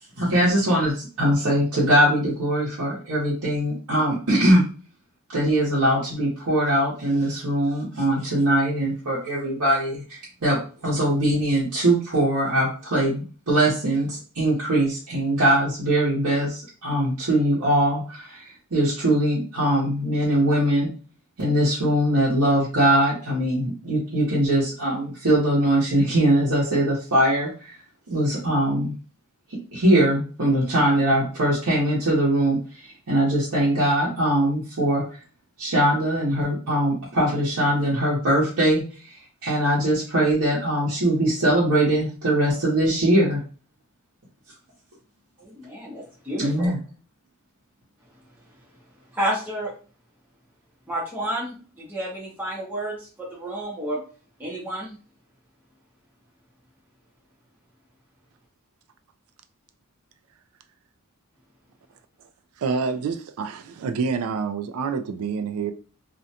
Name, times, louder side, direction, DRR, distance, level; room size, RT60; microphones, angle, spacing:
voice 1, 0.2-4.6 5.3-20.9 21.4-27.8 28.1-28.9 29.7-35.0 35.6-38.8 39.4-43.4 46.4-46.8, right 1 dB, 90° right, 0.9 m, -21 dB
voice 2, 45.4-46.7 49.1-49.7 50.9-54.0 54.4-55.0, right 1 dB, 10° right, 0.6 m, -30 dB
voice 3, 62.6-65.7, right 5 dB, 70° right, 0.3 m, -27 dB
2.4 x 2.1 x 2.7 m
head